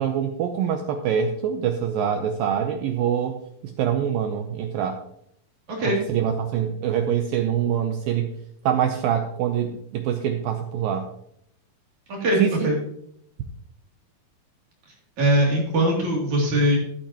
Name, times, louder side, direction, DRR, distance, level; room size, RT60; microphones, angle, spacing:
voice 1, 0.0-3.4 3.6-5.0 5.9-8.3 8.6-11.1 12.4-12.7, right 8 dB, 80° right, 5 dB, 2.1 m, -25 dB
voice 2, 12.1-12.8 15.2-16.8, right 1 dB, 50° right, -2 dB, 3.9 m, -21 dB
13.5 x 11.5 x 3.0 m, 0.72 s
omnidirectional pair, 4.8 m